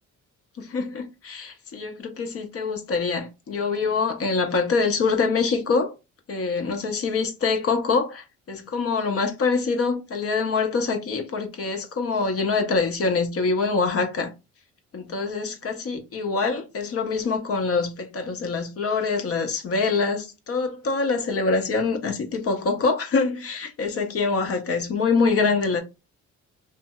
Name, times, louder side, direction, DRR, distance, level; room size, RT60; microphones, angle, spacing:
voice 1, 0.6-5.9 6.3-14.3 14.9-25.8, left 4 dB, 50° left, 0.7 m, -25 dB
2.8 x 2.6 x 2.2 m
cardioid pair, 90°, 30 cm